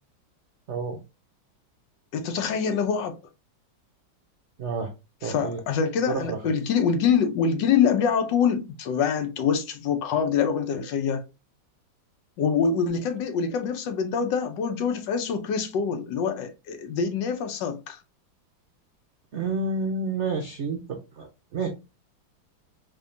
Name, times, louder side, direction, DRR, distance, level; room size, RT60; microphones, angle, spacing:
voice 1, 0.7-1.0 4.6-4.9 5.2-5.6 6.1-6.5 19.3-21.7, right 4 dB, 75° right, 0.6 m, -29 dB
voice 2, 2.1-3.2 5.2-11.2 12.4-18.0, left 6 dB, 75° left, 1.3 m, -25 dB
3.6 x 3.4 x 2.5 m
omnidirectional pair, 2.1 m